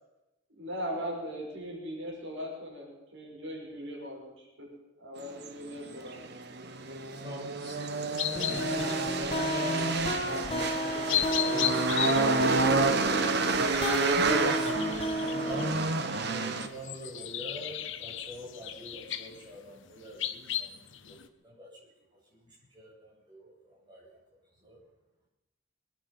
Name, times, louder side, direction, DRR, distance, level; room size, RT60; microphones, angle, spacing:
voice 1, 0.6-4.3 4.6-4.7 5.0-6.3, equal, 65° right, -2 dB, 5.7 m, -39 dB
sound 1, 5.3-16.7, right 3 dB, 50° right, 1.2 m, -29 dB
voice 2, 6.6-12.0 13.9-15.1 15.4-21.2 21.4-24.2 24.6-24.8, equal, 20° right, -6 dB, 7.8 m, -45 dB
sound 2, 8.2-10.4 10.9-21.3, left 11 dB, 60° left, 0.9 m, -36 dB
sound 3, 8.4-16.0, equal, 25° left, 1.5 m, -33 dB
voice 3, 10.2-10.3, equal, 5° left, -5 dB, 4.3 m, -49 dB
23.0 x 11.0 x 5.7 m, 0.97 s
head